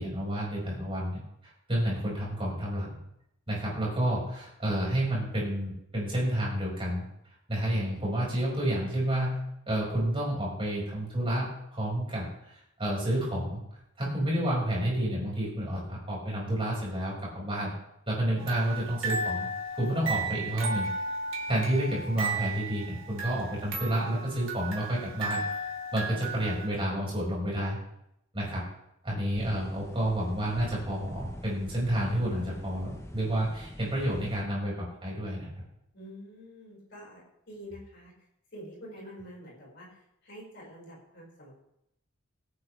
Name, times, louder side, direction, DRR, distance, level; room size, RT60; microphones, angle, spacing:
voice 1, 0.0-3.0 3.5-7.0 7.5-9.4 9.7-13.6 14.0-17.7 18.1-19.5 19.7-20.9 21.5-25.4 25.9-27.8 28.3-28.6 29.0-35.5, right 1 dB, 25° right, -5 dB, 5.6 m, -30 dB
sound 1, 18.4-26.7, right 2 dB, 65° right, 2.4 m, -35 dB
sound 2, 29.3-34.4, equal, 10° left, 0.9 m, -45 dB
voice 2, 35.9-38.1 38.5-41.5, equal, 55° left, -4 dB, 5.2 m, -47 dB
22.5 x 8.6 x 3.4 m, 0.80 s
head